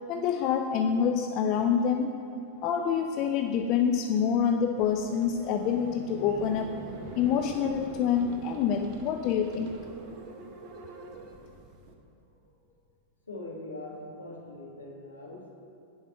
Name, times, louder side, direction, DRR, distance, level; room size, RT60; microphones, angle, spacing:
voice 1, 0.1-2.2 2.6-6.7 7.2-9.7, left 7 dB, 40° left, 5 dB, 0.3 m, -27 dB
sound 1, 4.8-11.9, right 4 dB, 40° right, 0.7 m, -44 dB
voice 2, 13.3-15.5, left 2 dB, 80° left, -3 dB, 1.5 m, -42 dB
7.4 x 4.8 x 5.6 m, 2.5 s
figure-of-eight pair, 90°, 0 cm